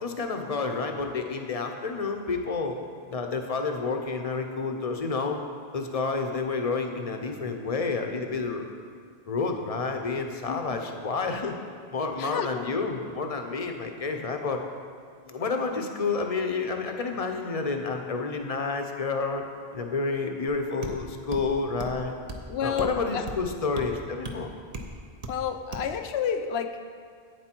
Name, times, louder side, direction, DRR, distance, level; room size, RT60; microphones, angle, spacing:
voice 1, 0.0-2.8 3.1-5.4 5.7-8.6 9.3-11.5 11.9-14.6 15.3-19.4 19.7-22.1 22.6-24.5, left 4 dB, 40° left, 4 dB, 0.7 m, -29 dB
voice 2, 10.5-10.9 12.2-12.7 22.5-23.3 25.3-26.8, left 7 dB, 75° left, 8 dB, 0.8 m, -30 dB
sound 1, 20.8-21.0 21.3-21.5 21.8-22.0 22.3-22.4 22.8-22.9 23.3-23.4 23.8-23.9 24.2-24.4 24.7-24.9 25.2-25.4 25.7-25.9, right 2 dB, 40° right, 0.7 m, -36 dB
8.7 x 7.6 x 4.5 m, 2.1 s
omnidirectional pair, 1.1 m